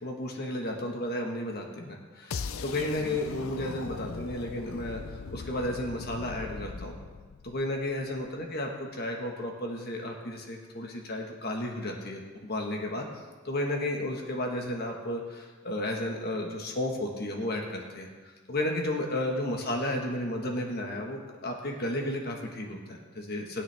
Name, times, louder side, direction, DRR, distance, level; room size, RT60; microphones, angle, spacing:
voice 1, 0.0-7.0 7.4-13.1 13.4-18.1 18.5-23.6, left 1 dB, 50° left, 1 dB, 1.5 m, -33 dB
sound 1, 2.3-8.3, left 4 dB, 85° left, 0.5 m, -40 dB
20.0 x 9.5 x 3.5 m, 1.4 s
head